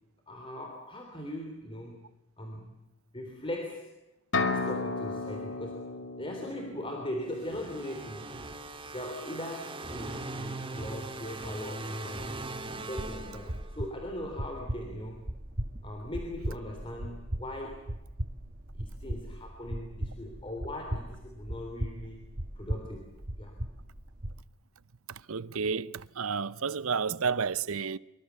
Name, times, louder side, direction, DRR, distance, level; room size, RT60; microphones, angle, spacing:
voice 1, 0.3-2.0 2.4-2.7 3.1-3.9 4.5-5.9 6.2-8.3 8.9-12.4 12.8-15.3 15.8-17.9 18.7-22.3 22.5-23.1 23.4-23.5, left 1 dB, 25° left, 3.4 m, -39 dB
sound 1, 4.3-8.1, left 3 dB, 55° left, 2.5 m, -34 dB
sound 2, 7.3-14.0, right 2 dB, 25° right, 1.9 m, -40 dB
sound 3, 13.0-24.4, right 1 dB, 40° right, 1.3 m, -38 dB
voice 2, 25.3-28.0, right 5 dB, 75° right, 0.8 m, -31 dB
25.5 x 23.5 x 7.1 m
head